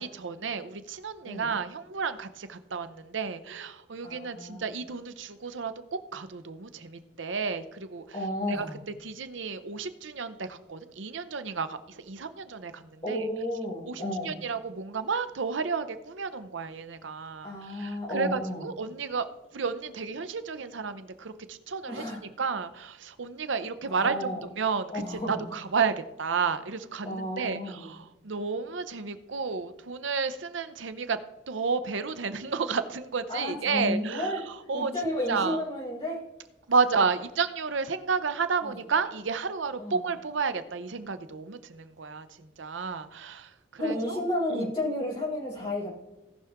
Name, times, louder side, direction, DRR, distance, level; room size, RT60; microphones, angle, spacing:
voice 1, 0.0-8.2 8.5-8.7 9.0-13.3 13.9-19.3 19.5-31.2 31.5-34.9 35.3-35.6 36.7-44.2 44.5-44.7, right 5 dB, 90° right, 11 dB, 0.7 m, -32 dB
voice 2, 4.0-4.7 8.1-8.8 13.0-14.4 17.4-18.7 21.9-22.2 23.9-24.4 24.9-25.4 27.0-27.9 33.3-34.4 34.7-36.2 38.6-38.8 39.8-40.0 43.8-45.9, left 1 dB, 30° left, -8 dB, 4.2 m, -32 dB
17.5 x 5.9 x 3.6 m, 0.99 s
head